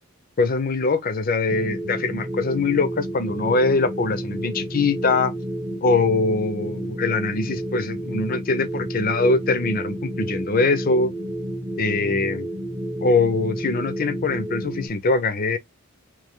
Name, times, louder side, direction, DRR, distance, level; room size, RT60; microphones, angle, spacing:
voice 1, 0.4-5.3 5.8-11.1 11.8-12.5 13.0-15.6, left 3 dB, 45° left, 0.6 m, -22 dB
sound 1, 1.5-14.9, right 1 dB, 20° right, 0.7 m, -31 dB
3.2 x 3.1 x 3.6 m
head